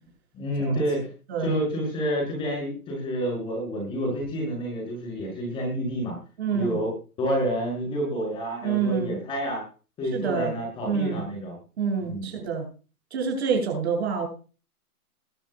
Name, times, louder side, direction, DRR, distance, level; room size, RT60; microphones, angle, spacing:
voice 1, 0.3-1.1 1.4-6.2 6.5-6.9 7.2-9.6 10.0-11.6 12.0-12.3, equal, 10° left, 0 dB, 6.2 m, -29 dB
voice 2, 6.4-6.8 8.6-9.1 10.1-10.5 10.8-11.2 11.8-12.6 13.1-14.3, right 6 dB, 45° right, 1 dB, 7.8 m, -27 dB
22.0 x 13.0 x 2.3 m, 0.36 s
hypercardioid pair, 180°, 45 cm